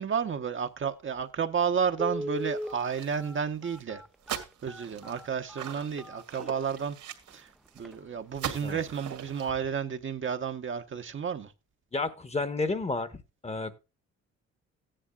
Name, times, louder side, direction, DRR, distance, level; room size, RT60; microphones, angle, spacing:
voice 1, 0.0-4.0 4.3-7.0 7.3-11.5, right 7 dB, 40° right, 0.9 m, -32 dB
Telephone, 1.2-1.3 1.9-6.8 7.3-7.4 7.8-8.0 8.3-8.6 8.9-9.0, equal, ahead, 0.5 m, -39 dB
sound 1, 2.4-3.4 3.7-3.8 4.2-7.9 8.3-9.5, right 9 dB, 70° right, 2.1 m, -41 dB
voice 2, 11.9-13.2 13.4-13.8, left 3 dB, 20° left, 1.1 m, -31 dB
15.0 x 10.0 x 2.3 m
cardioid pair, 90°, 30 cm